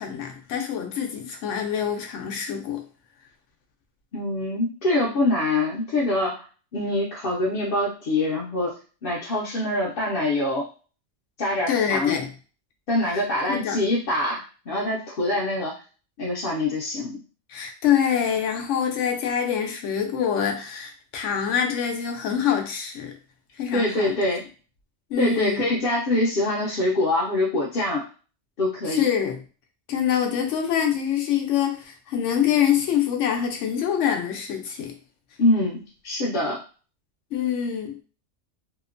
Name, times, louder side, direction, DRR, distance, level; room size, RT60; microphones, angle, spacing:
voice 1, 0.0-2.9 11.7-12.3 13.5-13.8 17.5-23.1 23.6-24.2 25.1-25.6 28.9-29.4 29.9-35.0 37.3-38.0, left 8 dB, 85° left, 4 dB, 0.9 m, -25 dB
voice 2, 4.1-6.4 6.7-10.7 11.4-12.2 12.9-15.7 16.2-17.2 23.7-24.4 25.2-28.0 28.6-29.1 35.4-36.6, left 2 dB, 55° left, -5 dB, 0.7 m, -24 dB
2.8 x 2.1 x 2.5 m, 0.37 s
omnidirectional pair, 1.2 m